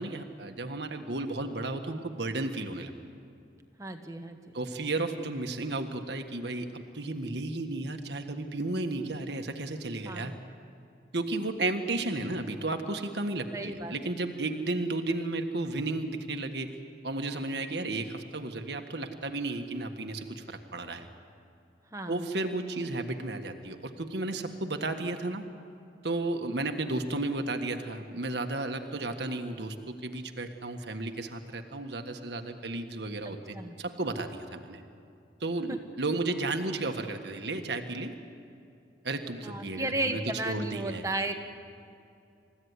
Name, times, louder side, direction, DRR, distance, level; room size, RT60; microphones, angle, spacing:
voice 1, 0.0-2.9 4.5-10.3 11.1-16.8 17.0-21.1 22.1-25.4 26.0-34.8 35.4-38.2 39.0-41.0, right 2 dB, 70° right, 5 dB, 1.6 m, -33 dB
voice 2, 3.8-4.6 10.0-10.3 13.5-14.1 21.9-22.2 33.2-33.7 35.7-35.8 39.4-41.4, right 2 dB, 15° right, 6 dB, 1.3 m, -34 dB
29.0 x 15.5 x 9.7 m, 2.6 s
head